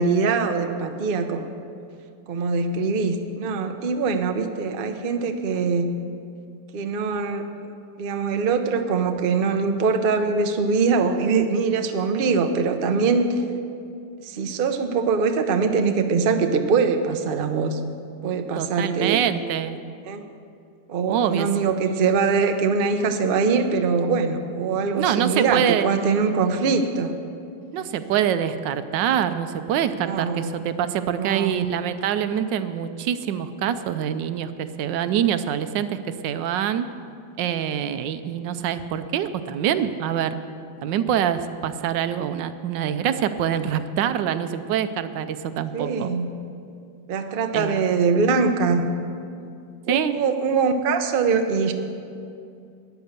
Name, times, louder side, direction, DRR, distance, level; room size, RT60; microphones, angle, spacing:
voice 1, 0.0-1.4 2.3-5.9 6.7-7.4 8.0-13.4 14.2-17.8 18.2-19.2 20.1-20.2 20.9-27.2 30.0-30.5 31.2-31.7 45.7-46.3 47.1-48.9 49.9-51.7, right 5 dB, 50° right, 6 dB, 0.6 m, -23 dB
voice 2, 18.6-19.8 21.1-21.5 25.0-25.9 27.7-36.9 37.4-40.4 40.8-46.1 47.5-47.8 49.9-50.2, right 9 dB, 80° right, 11 dB, 1.3 m, -25 dB
12.5 x 9.7 x 6.6 m, 2.5 s
omnidirectional pair, 1.9 m